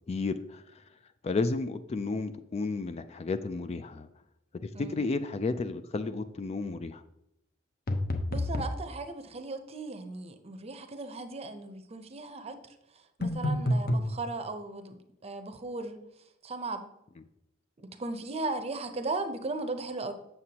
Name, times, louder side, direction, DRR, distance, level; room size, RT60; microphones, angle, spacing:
voice 1, 0.1-0.6 1.2-4.1 4.8-7.0, left 3 dB, 30° left, 11 dB, 0.3 m, -32 dB
sound 1, 7.9-8.8 13.2-14.1, left 1 dB, 50° left, 0.8 m, -28 dB
voice 2, 8.3-12.6 13.2-16.0 16.4-16.8 17.8-20.1, right 3 dB, 30° right, 8 dB, 0.6 m, -37 dB
7.7 x 6.8 x 2.9 m, 0.83 s
head